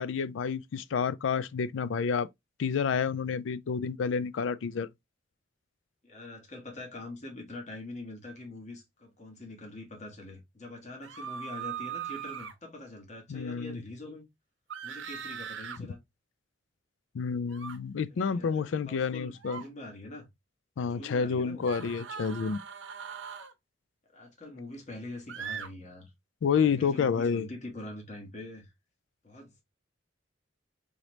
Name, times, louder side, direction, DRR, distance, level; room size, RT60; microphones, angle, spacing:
voice 1, 0.0-2.3 2.6-4.9 13.3-13.8 17.1-19.6 20.8-22.6 26.4-27.5, left 6 dB, 85° left, 0.4 m, -29 dB
voice 2, 6.0-14.2 14.8-16.0 18.1-20.3 20.8-21.7 24.1-26.1 26.6-28.7 29.2-29.6, left 2 dB, 40° left, 1.5 m, -44 dB
sound 1, 11.0-12.5 14.7-15.8 17.5-17.8 19.3-19.7 21.6-23.5 25.3-25.7, right 8 dB, 85° right, 0.7 m, -40 dB
3.9 x 3.3 x 2.9 m
head